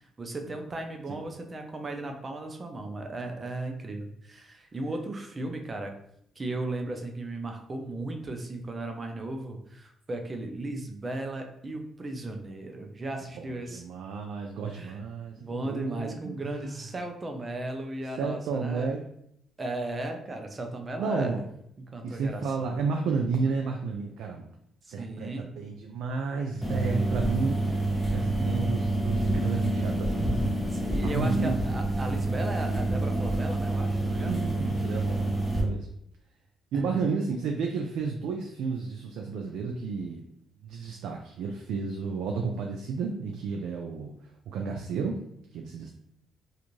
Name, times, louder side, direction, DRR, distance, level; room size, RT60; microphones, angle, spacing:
voice 1, 0.2-5.9 6.4-13.8 14.7-15.0 15.4-18.9 19.6-21.4 21.9-22.8 23.5-23.6 24.8-25.5 30.7-34.4 36.7-37.0, right 2 dB, 30° right, 4 dB, 0.5 m, -36 dB
voice 2, 13.3-16.8 18.2-19.0 21.0-21.4 22.0-24.5 24.9-27.6 28.1-30.6 31.0-31.6 34.2-35.9 36.7-40.2 40.6-44.1 44.5-45.2 45.5-45.9, right 4 dB, 85° right, 1 dB, 0.3 m, -32 dB
sound 1, 26.6-35.6, right 1 dB, ahead, 0.8 m, -28 dB
2.5 x 2.4 x 3.0 m, 0.72 s
cardioid pair, 90°, 0 cm